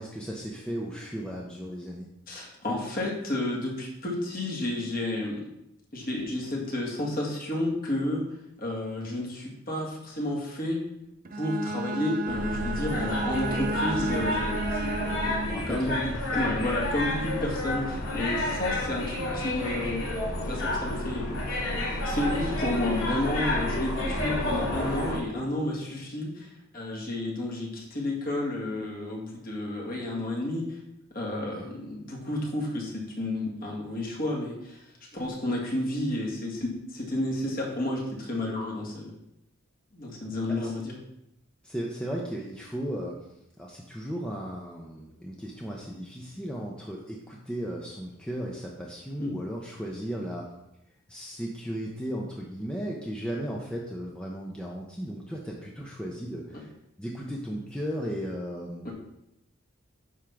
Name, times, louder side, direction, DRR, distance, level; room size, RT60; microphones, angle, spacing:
voice 1, 0.0-2.1 15.5-16.0 16.3-16.4 31.5-31.7 40.5-40.7 41.6-43.2 43.6-50.5 51.1-56.7 57.0-58.9, equal, 5° left, -2 dB, 0.7 m, -35 dB
voice 2, 2.3-5.4 5.9-8.2 8.6-10.8 11.3-21.3 22.0-30.8 31.1-39.1 39.9-40.9 49.2-49.3 58.8-58.9, left 1 dB, 40° left, -3 dB, 2.0 m, -31 dB
Bowed string instrument, 11.2-15.7, right 2 dB, 40° right, 0.5 m, -32 dB
sound 1, 12.3-25.2, left 1 dB, 80° left, 2.8 m, -30 dB
9.7 x 3.7 x 5.8 m, 0.83 s
head